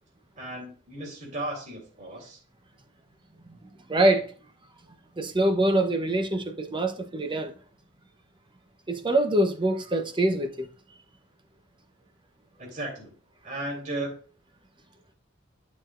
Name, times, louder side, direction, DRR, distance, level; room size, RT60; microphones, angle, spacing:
voice 1, 0.4-2.4 12.6-13.1 13.4-14.1, right 1 dB, 40° right, 3.3 m, -35 dB
voice 2, 3.9-4.3 5.2-7.5 8.9-10.7, right 1 dB, 25° right, 0.9 m, -24 dB
11.5 x 6.3 x 2.6 m
head